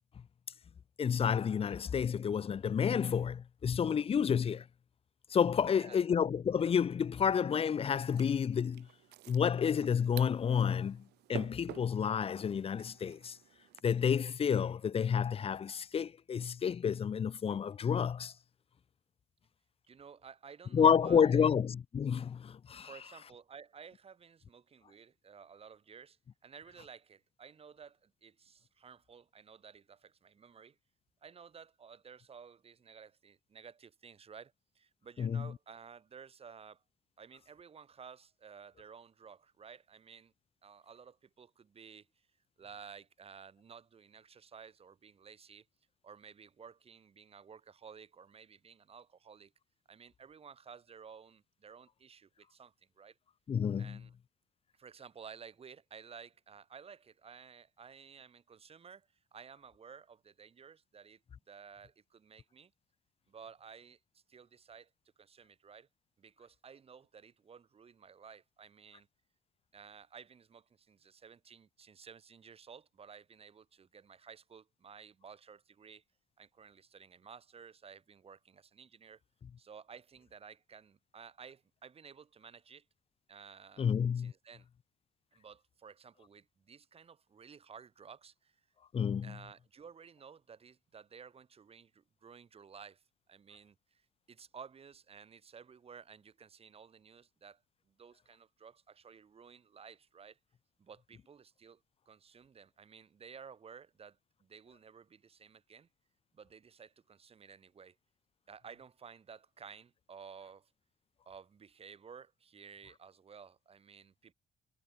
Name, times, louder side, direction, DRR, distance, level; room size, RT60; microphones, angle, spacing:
voice 1, 1.0-4.6 5.3-8.9 9.3-11.0 11.3-13.4 13.8-18.3 20.7-22.9 35.2-35.5 53.5-54.0 83.8-84.3 88.9-89.3, left 7 dB, 35° left, 0.9 m, -30 dB
voice 2, 5.7-6.0 19.9-21.5 22.8-30.8 31.2-36.8 37.2-40.3 40.6-42.1 42.6-45.7 46.0-49.5 49.9-53.2 53.8-54.1 54.8-61.2 61.5-62.7 63.3-64.9 65.2-65.9 66.2-69.1 69.7-76.0 76.4-79.2 79.6-82.8 83.3-83.9 84.1-84.7 85.3-88.6 89.2-93.0 93.3-94.0 94.3-97.6 97.9-100.4 100.8-101.8 102.1-105.9 106.3-108.0 108.5-110.7 111.3-114.3, right 6 dB, 35° right, 4.4 m, -54 dB
sound 1, 7.8-13.8, right 17 dB, 80° right, 3.6 m, -51 dB
cardioid pair, 110°, 17 cm